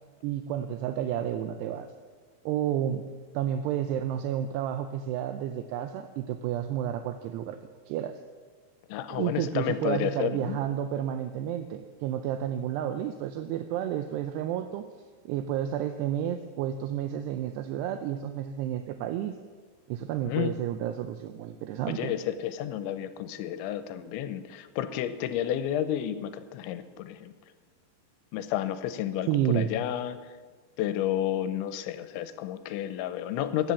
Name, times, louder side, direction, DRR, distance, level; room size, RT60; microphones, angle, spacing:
voice 1, 0.2-1.9 2.5-3.0 3.3-7.6 7.9-8.2 9.1-14.9 15.3-19.3 19.9-22.1 29.3-29.7, right 10 dB, 80° right, 9 dB, 2.5 m, -31 dB
voice 2, 8.9-10.6 20.3-20.5 21.9-27.3 28.3-30.2 30.8-33.7, left 11 dB, 85° left, 12 dB, 3.1 m, -31 dB
15.5 x 10.5 x 7.2 m, 1.5 s
omnidirectional pair, 5.3 m